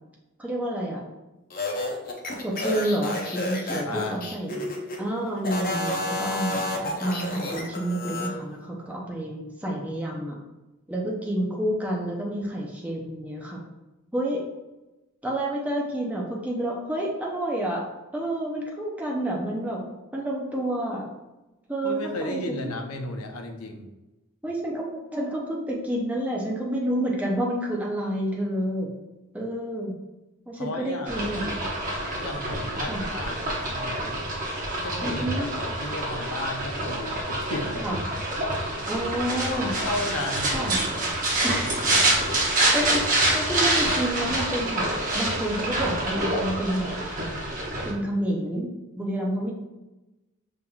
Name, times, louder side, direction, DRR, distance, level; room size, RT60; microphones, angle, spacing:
voice 1, 0.4-1.0 2.4-10.4 10.9-13.6 14.1-14.4 15.2-17.8 18.1-19.8 20.1-21.1 21.7-22.7 24.4-28.9 29.3-29.9 30.5-31.4 32.9-33.0 35.0-35.5 37.8-38.0 38.9-39.7 40.5-40.8 41.4-41.8 42.4-43.1 43.3-46.9 47.8-48.7 49.0-49.5, right 1 dB, 5° right, -3 dB, 0.6 m, -29 dB
sound 1, 1.5-5.0 5.4-8.3, left 2 dB, 40° left, 0.7 m, -30 dB
voice 2, 3.8-4.3 21.8-23.9 30.5-31.2 32.2-34.2 34.8-37.9 39.8-40.6, left 2 dB, 85° left, 4 dB, 0.7 m, -34 dB
sound 2, 31.1-47.9, right 1 dB, 40° right, 1.0 m, -27 dB
5.4 x 3.5 x 2.3 m, 1.0 s
head